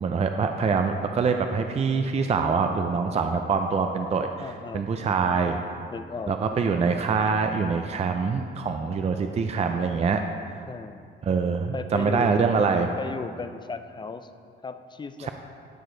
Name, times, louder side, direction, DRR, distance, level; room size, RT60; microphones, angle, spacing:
voice 1, 0.0-4.5 4.7-5.6 6.3-10.2 11.2-12.9 15.2-15.3, right 5 dB, 35° right, 5 dB, 0.4 m, -24 dB
voice 2, 4.4-4.9 5.9-6.4 10.7-11.0 11.7-12.5 13.0-14.3 14.6-15.3, left 4 dB, 25° left, 10 dB, 0.4 m, -36 dB
12.5 x 4.9 x 3.9 m, 2.3 s
cardioid pair, 90°, 20 cm